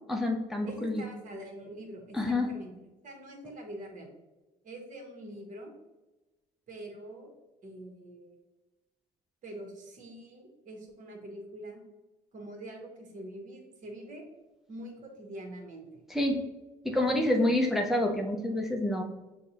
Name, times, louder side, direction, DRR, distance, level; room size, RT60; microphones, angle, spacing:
voice 1, 0.1-1.0 2.1-2.5 16.1-16.4 16.8-19.0, left 1 dB, ahead, 1 dB, 0.4 m, -27 dB
voice 2, 0.6-2.7 3.0-4.1 4.6-5.7 6.7-7.3 7.6-8.4 9.4-11.8 12.3-14.3 14.7-16.0, right 1 dB, 50° right, 2 dB, 1.1 m, -44 dB
6.5 x 2.3 x 2.8 m, 1.1 s
cardioid pair, 110°, 17 cm